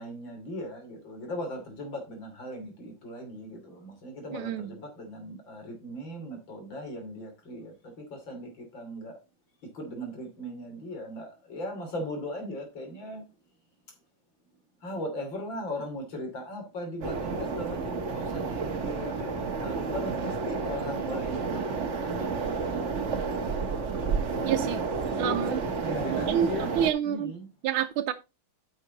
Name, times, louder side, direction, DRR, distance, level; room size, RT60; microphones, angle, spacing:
voice 1, 0.0-9.2 9.6-13.2 14.8-23.0 25.2-26.7 27.0-27.5, equal, 65° left, 3.6 m, -38 dB
voice 2, 4.3-4.7 24.4-24.8 25.2-25.5 26.3-26.5 26.8-27.3 27.6-28.1, right 10 dB, 85° right, 1.5 m, -27 dB
sound 1, 17.0-26.9, right 4 dB, 40° right, 1.3 m, -31 dB
9.7 x 6.6 x 3.9 m
omnidirectional pair, 2.2 m